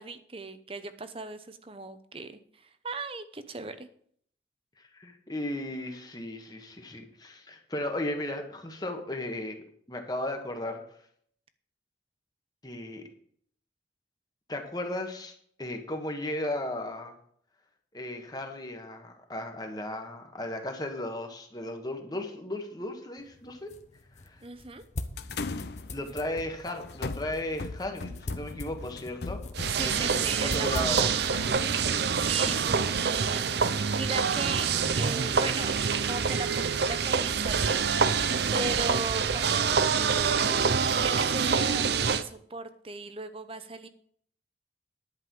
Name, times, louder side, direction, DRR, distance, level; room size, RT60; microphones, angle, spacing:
voice 1, 0.0-3.9 24.4-24.8 29.7-31.1 32.1-37.9 38.5-43.9, right 3 dB, 30° right, 11 dB, 0.8 m, -38 dB
voice 2, 4.8-10.8 12.6-13.0 14.5-17.2 17.9-23.7 24.2-24.4 25.9-29.4 29.8-31.1, left 1 dB, 20° left, 4 dB, 1.4 m, -35 dB
sound 1, 23.2-33.1, left 2 dB, 40° left, 0.9 m, -43 dB
sound 2, 25.2-33.5, left 3 dB, 60° left, 0.6 m, -40 dB
sound 3, 29.5-42.2, right 6 dB, 65° right, 0.6 m, -26 dB
11.0 x 5.4 x 7.7 m, 0.62 s
head